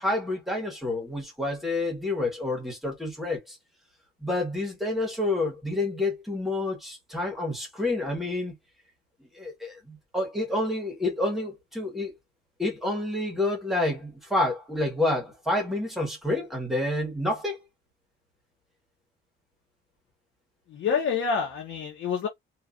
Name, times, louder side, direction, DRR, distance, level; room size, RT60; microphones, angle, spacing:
voice 1, 0.0-3.6 4.2-8.6 9.3-12.1 12.6-17.6, left 2 dB, ahead, 1.1 m, -28 dB
voice 2, 20.7-22.3, left 6 dB, 75° left, 0.9 m, -27 dB
3.1 x 2.4 x 2.5 m
cardioid pair, 175°, 21 cm